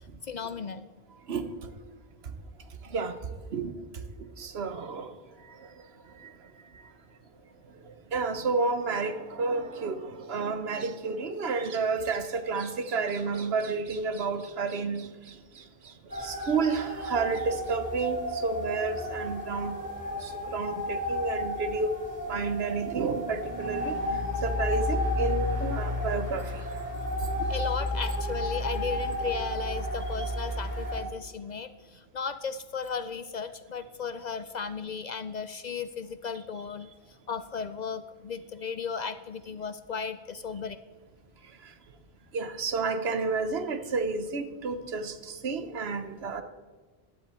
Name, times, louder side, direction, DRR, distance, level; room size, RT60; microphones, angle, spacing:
voice 1, 0.2-0.9 27.5-36.9 37.3-40.8, left 6 dB, 55° left, 12 dB, 0.6 m, -35 dB
voice 2, 4.4-5.1 8.1-15.1 16.2-19.8 20.2-21.9 22.3-23.9 24.4-26.4 30.2-30.3 42.3-46.4, right 4 dB, 80° right, 10 dB, 1.2 m, -30 dB
sound 1, 16.1-31.0, left 1 dB, 20° right, 4.1 m, -32 dB
15.0 x 10.5 x 4.4 m, 1.4 s
omnidirectional pair, 1.0 m